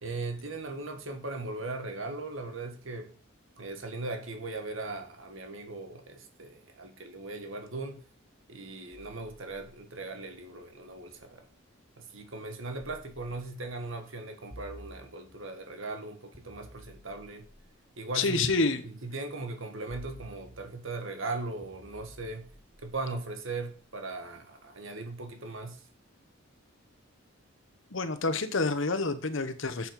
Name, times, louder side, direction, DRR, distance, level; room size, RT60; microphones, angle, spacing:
voice 1, 0.0-3.1 3.6-8.0 8.5-11.4 12.0-17.5 18.0-22.5 22.8-25.8, right 3 dB, 70° right, 1.8 m, -38 dB
sound 1, 8.9-11.7 12.8-13.8 14.5-15.6 16.3-18.6 19.9-21.0 21.6-23.8, equal, 20° left, 1.6 m, -53 dB
voice 2, 18.1-18.8 27.9-29.9, left 3 dB, 65° left, 1.1 m, -28 dB
7.8 x 7.3 x 5.2 m
head